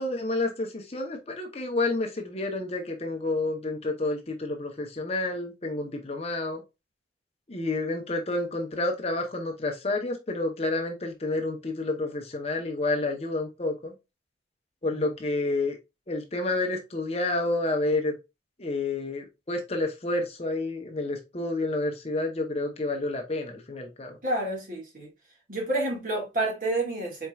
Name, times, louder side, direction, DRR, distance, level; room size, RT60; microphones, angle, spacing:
voice 1, 0.0-6.6 7.5-13.9 14.8-15.8 16.1-18.2 18.6-24.2, left 2 dB, 35° left, 0.8 m, -29 dB
voice 2, 24.2-25.1 25.5-27.3, right 2 dB, 50° right, 1.9 m, -29 dB
4.4 x 4.3 x 2.3 m
head